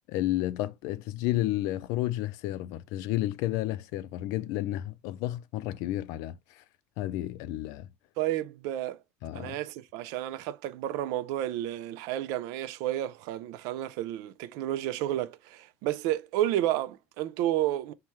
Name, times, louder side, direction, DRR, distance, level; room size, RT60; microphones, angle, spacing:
voice 1, 0.1-6.6 7.0-7.9 9.2-9.6, left 15 dB, 70° left, 0.4 m, -31 dB
voice 2, 8.2-9.0 9.3-17.9, right 13 dB, 70° right, 0.4 m, -31 dB
5.6 x 2.2 x 3.1 m
cardioid pair, 140°, 6 cm